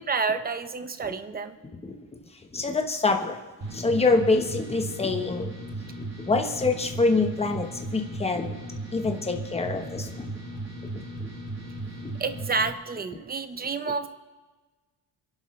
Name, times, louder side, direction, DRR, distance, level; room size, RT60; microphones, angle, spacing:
voice 1, 0.0-1.6 12.2-14.1, right 4 dB, 20° right, 10 dB, 0.6 m, -29 dB
voice 2, 2.5-3.4 3.7-5.5 6.0-8.5 8.9-10.3 10.9-11.3 12.0-12.1, left 3 dB, 15° left, 3 dB, 1.0 m, -26 dB
sound 1, 3.6-12.7, right 2 dB, 35° right, 2.7 m, -36 dB
26.5 x 11.5 x 3.2 m, 1.3 s
wide cardioid pair, 180°, 43 cm